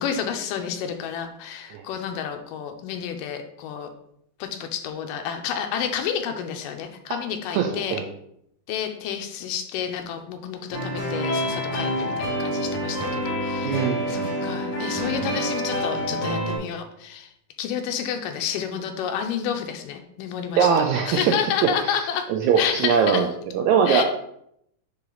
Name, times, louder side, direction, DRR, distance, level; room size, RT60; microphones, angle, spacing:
voice 1, 0.0-3.9 4.4-8.0 8.7-17.3 17.6-20.7 21.1-22.3 22.6-23.3 23.9-24.0, left 8 dB, 85° left, 6 dB, 2.3 m, -30 dB
voice 2, 7.5-8.1 13.6-14.0 14.3-14.5 20.6-21.3 21.8-23.3 23.5-24.0, right 7 dB, 80° right, 3 dB, 1.7 m, -21 dB
sound 1, 10.7-16.6, equal, 65° left, 3.9 m, -27 dB
9.5 x 3.3 x 3.9 m, 0.74 s
omnidirectional pair, 3.8 m